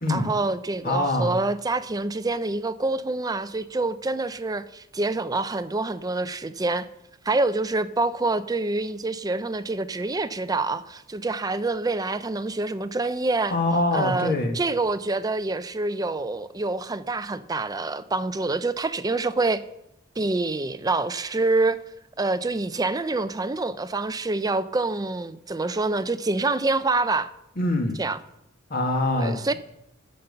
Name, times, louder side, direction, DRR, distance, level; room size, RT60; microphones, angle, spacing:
voice 1, 0.1-6.9 7.2-13.5 13.9-19.6 20.2-21.8 22.2-27.3 28.0-28.2 29.2-29.5, right 3 dB, 20° right, 0.5 m, -26 dB
voice 2, 0.8-1.4 13.5-14.6 27.6-28.0 28.7-29.5, left 2 dB, 45° left, 1.9 m, -24 dB
15.0 x 5.4 x 6.7 m
head